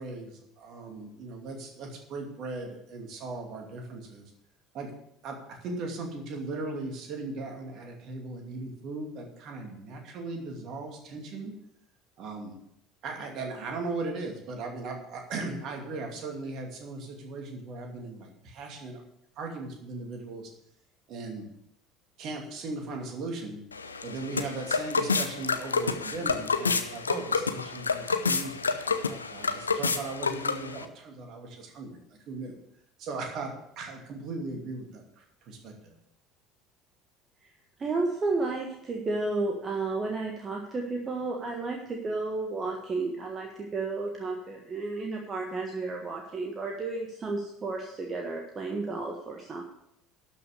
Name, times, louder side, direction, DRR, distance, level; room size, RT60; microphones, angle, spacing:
voice 1, 0.0-4.2 4.7-4.9 5.2-11.6 12.2-12.6 13.0-19.0 19.4-20.5 21.1-21.5 22.2-23.6 24.0-32.6 33.0-35.9, right 3 dB, 50° right, 2 dB, 2.5 m, -38 dB
sound 1, 23.7-30.8, left 4 dB, 80° left, 0.6 m, -29 dB
voice 2, 37.8-49.6, right 3 dB, 30° right, 2 dB, 1.4 m, -32 dB
12.0 x 6.0 x 6.6 m, 0.77 s
figure-of-eight pair, 60°, 0 cm